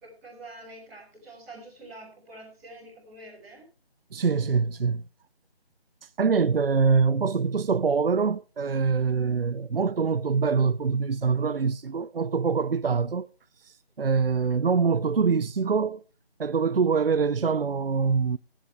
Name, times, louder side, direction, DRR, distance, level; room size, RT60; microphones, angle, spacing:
voice 1, 0.0-3.7 9.2-9.3, right 1 dB, ahead, 1.3 m, -46 dB
voice 2, 4.1-5.0 6.2-13.3 13.6-16.0 16.4-18.4, right 5 dB, 65° right, 0.6 m, -24 dB
15.0 x 10.0 x 4.5 m
figure-of-eight pair, 175°, 32 cm